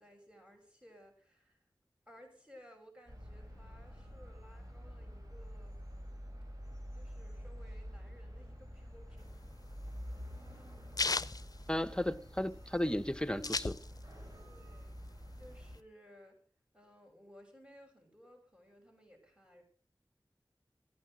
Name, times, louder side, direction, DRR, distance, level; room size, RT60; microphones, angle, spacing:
voice 1, 0.0-1.6 2.1-5.8 6.9-9.4 10.5-10.6 11.9-12.0 14.4-16.4 16.7-19.6, equal, 10° right, 6.8 m, -59 dB
sound 1, 3.1-15.8, equal, 45° right, 4.6 m, -48 dB
sound 2, 9.2-12.4 12.7-12.8 13.0-14.3 14.6-15.8, left 3 dB, 50° left, 0.6 m, -36 dB
voice 2, 11.7-13.8, left 1 dB, 10° left, 1.0 m, -34 dB
15.0 x 10.0 x 6.3 m
wide cardioid pair, 45°, 8 cm